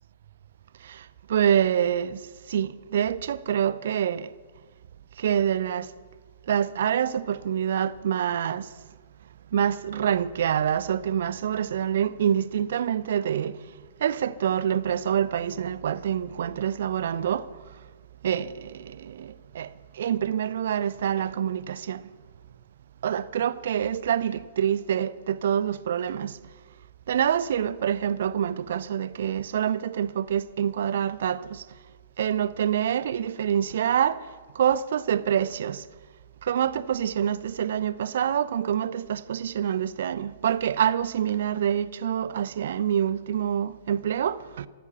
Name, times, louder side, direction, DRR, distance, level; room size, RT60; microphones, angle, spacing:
voice 1, 0.8-2.2 2.5-4.3 5.2-5.9 6.5-8.7 9.5-13.6 14.0-17.5 18.2-22.0 23.0-26.4 27.1-31.7 32.2-34.3 34.5-35.8 36.4-44.7, right 9 dB, 60° right, 0.6 m, -26 dB
18.0 x 14.5 x 5.6 m
figure-of-eight pair, 110°, 0 cm